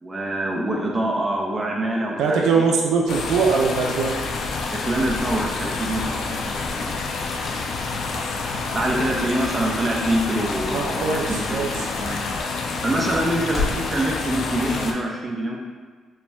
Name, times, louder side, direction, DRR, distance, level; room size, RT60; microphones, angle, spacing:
voice 1, 0.0-2.7 4.7-7.0 8.7-12.3 12.8-15.6, right 1 dB, 25° right, -1 dB, 0.7 m, -25 dB
voice 2, 2.2-4.1 10.7-11.9, right 5 dB, 85° right, 0 dB, 0.4 m, -22 dB
sound 1, 3.1-14.9, left 3 dB, 70° left, 0.4 m, -28 dB
sound 2, 7.6-13.9, left 3 dB, 25° left, 1.0 m, -37 dB
4.3 x 2.2 x 3.4 m, 1.5 s
cardioid pair, 90°, 0 cm